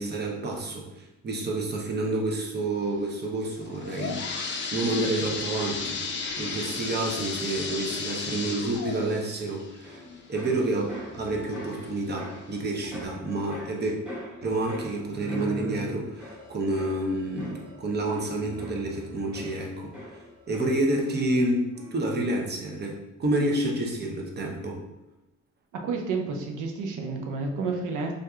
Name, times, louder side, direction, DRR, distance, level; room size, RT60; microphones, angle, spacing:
voice 1, 0.0-6.0 6.4-10.0 10.3-13.9 14.4-19.9 20.5-24.8, right 2 dB, 35° right, 0 dB, 0.7 m, -29 dB
sound 1, 3.6-11.2 11.7-11.8 12.5-12.6 13.0-13.1, left 4 dB, 40° left, 0.5 m, -34 dB
sound 2, 9.8-21.4 21.7-22.2, equal, 5° right, 1.1 m, -42 dB
voice 2, 25.7-28.1, right 4 dB, 80° right, 3 dB, 0.6 m, -30 dB
3.5 x 2.7 x 2.3 m, 0.98 s
cardioid pair, 90°, 30 cm